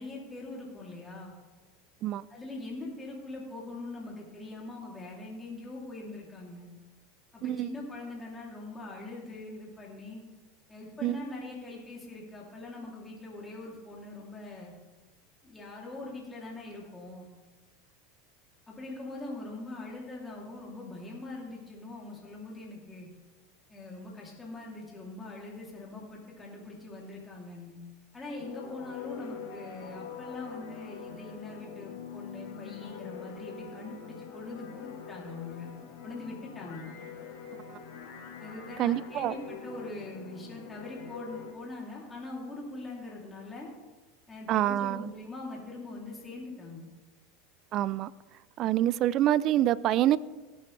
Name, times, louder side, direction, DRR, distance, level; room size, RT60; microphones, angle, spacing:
voice 1, 0.0-1.3 2.3-6.7 7.3-10.2 10.7-14.7 15.4-17.3 18.7-23.1 23.7-27.8 28.1-35.7 36.0-36.9 38.4-43.7 44.3-46.9, left 2 dB, 15° left, -3 dB, 3.0 m, -42 dB
voice 2, 7.4-7.7 11.0-11.2 38.8-39.3 44.5-45.1 47.7-48.1 48.6-50.2, right 13 dB, 45° right, 20 dB, 0.4 m, -26 dB
sound 1, 28.4-41.5, left 6 dB, 70° left, 2.4 m, -44 dB
17.5 x 8.4 x 3.3 m, 1.3 s
supercardioid pair, 110°, 0 cm